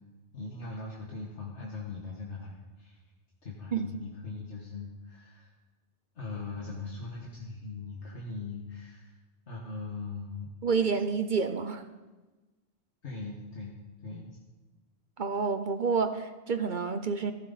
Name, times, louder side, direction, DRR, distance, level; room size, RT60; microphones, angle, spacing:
voice 1, 0.3-3.0 3.4-5.5 6.2-9.2 9.5-10.5 13.0-14.4, left 3 dB, 80° left, -3 dB, 2.0 m, -40 dB
voice 2, 10.6-11.8 15.2-17.3, right 5 dB, 50° right, 9 dB, 0.8 m, -29 dB
15.5 x 14.0 x 4.1 m, 1.2 s
omnidirectional pair, 1.2 m